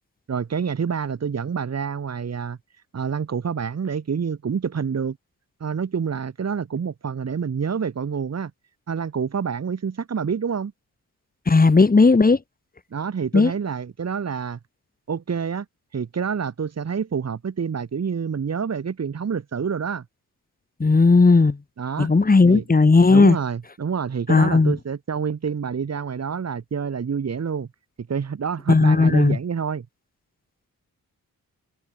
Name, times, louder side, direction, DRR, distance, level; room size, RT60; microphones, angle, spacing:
voice 1, 0.3-2.6 2.9-5.2 5.6-8.5 8.9-10.7 12.9-14.6 15.1-15.6 15.9-20.0 21.8-22.1 22.5-22.6 23.1-27.7 28.1-29.9, right 6 dB, 50° right, 3.1 m, -27 dB
voice 2, 11.5-12.4 13.3-13.5 20.8-21.6 22.0-23.4 24.3-24.7 28.7-29.4, left 3 dB, 25° left, 3.1 m, -15 dB
wide cardioid pair, 115°, 34 cm